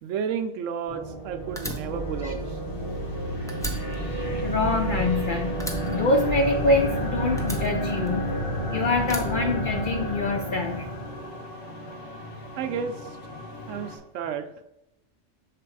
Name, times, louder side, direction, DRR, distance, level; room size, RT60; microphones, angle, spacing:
voice 1, 0.0-2.6 12.6-13.2 13.7-14.5, right 7 dB, 75° right, 8 dB, 0.9 m, -32 dB
sound 1, 0.9-11.4, right 1 dB, 25° left, 1.5 m, -30 dB
sound 2, 1.3-14.0, left 1 dB, 90° left, 1.3 m, -42 dB
Fire, 1.6-3.2 3.5-5.2 5.6-6.9 7.4-8.5 9.0-10.2, equal, 5° left, 0.5 m, -38 dB
voice 2, 4.4-5.5 5.9-8.3 8.7-10.9, left 2 dB, 60° left, 2 dB, 0.5 m, -25 dB
6.6 x 3.4 x 4.6 m, 0.86 s
omnidirectional pair, 1.3 m